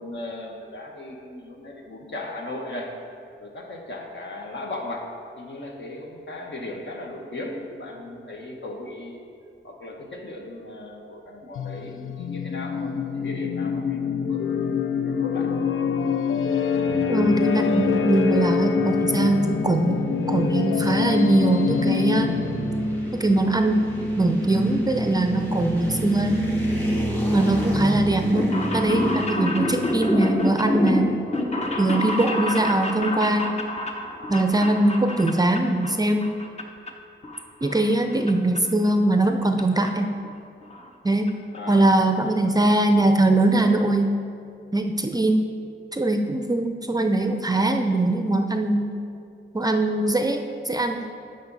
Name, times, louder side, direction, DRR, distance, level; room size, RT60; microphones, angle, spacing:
voice 1, 0.0-2.9 3.4-5.1 5.4-9.2 9.6-15.5 41.5-42.5, left 2 dB, 65° left, 0 dB, 1.3 m, -37 dB
sound 1, 11.5-22.9, left 6 dB, 85° left, 0.5 m, -25 dB
sound 2, 16.9-31.0, right 1 dB, 10° left, 1.4 m, -29 dB
voice 2, 17.1-22.4 23.1-23.9 24.2-26.4 27.3-31.2 31.8-33.6 34.3-36.3 37.6-40.1 41.0-41.3 41.7-44.2 44.7-45.5 45.9-48.9 49.5-51.0, right 2 dB, 20° right, 5 dB, 0.4 m, -21 dB
sound 3, 28.2-35.9 36.2-36.9 37.2-38.3 38.6-38.7 39.6-39.7 39.9-40.0 40.2-40.3 40.6-40.9 41.3-41.4 41.6-41.7, left 1 dB, 30° left, 0.8 m, -28 dB
12.0 x 5.1 x 4.0 m, 2.5 s
wide cardioid pair, 110°, 20 cm